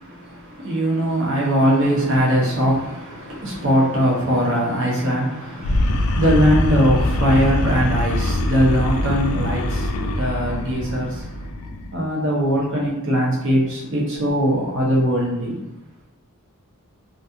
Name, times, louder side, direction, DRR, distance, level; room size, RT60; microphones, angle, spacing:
voice 1, 0.0-11.7 11.9-15.6, equal, 60° right, -4 dB, 1.0 m, -21 dB
sound 1, 5.6-11.9, left 1 dB, 70° left, 0.3 m, -23 dB
3.0 x 2.6 x 2.8 m, 0.97 s
head